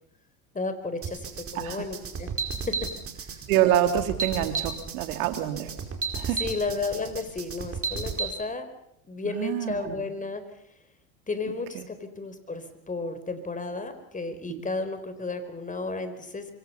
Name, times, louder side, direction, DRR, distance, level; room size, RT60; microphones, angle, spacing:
voice 1, 0.5-2.3 2.7-2.9 6.4-8.7 9.1-10.4 11.3-16.5, left 3 dB, 20° left, 10 dB, 4.4 m, -33 dB
sound 1, 1.0-8.3, right 5 dB, 30° right, 5.1 m, -33 dB
voice 2, 3.5-5.7 6.1-6.4 9.2-10.1 11.7-11.9 14.5-14.6, right 11 dB, 75° right, 8 dB, 2.9 m, -26 dB
27.0 x 23.5 x 5.7 m, 0.73 s
hypercardioid pair, 90°, 43 cm